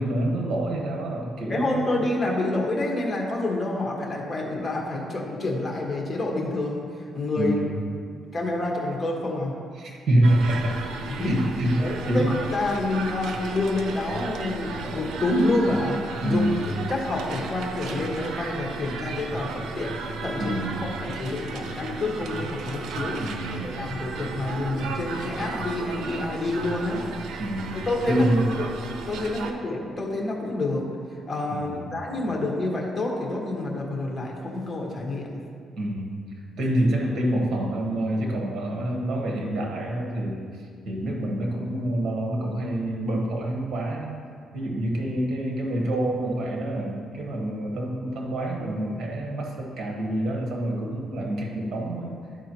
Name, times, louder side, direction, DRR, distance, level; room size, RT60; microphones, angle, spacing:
voice 1, 0.0-1.9 7.3-7.8 9.8-10.8 11.2-12.3 16.2-16.6 20.4-20.8 23.2-23.8 27.4-28.6 31.5-31.9 35.8-36.2 36.6-40.5 40.8-44.2 44.5-52.2, right 1 dB, 60° right, -1 dB, 1.5 m, -27 dB
voice 2, 1.5-7.7 8.3-9.5 11.1-11.4 11.8-16.4 16.8-23.2 23.5-27.0 27.7-28.3 28.6-28.7 29.1-30.9 31.3-35.3, left 2 dB, 25° left, -1 dB, 1.7 m, -28 dB
sound 1, 10.2-29.5, right 4 dB, 75° right, 0.6 m, -35 dB
12.5 x 4.7 x 3.1 m, 2.1 s
cardioid pair, 90°, 0 cm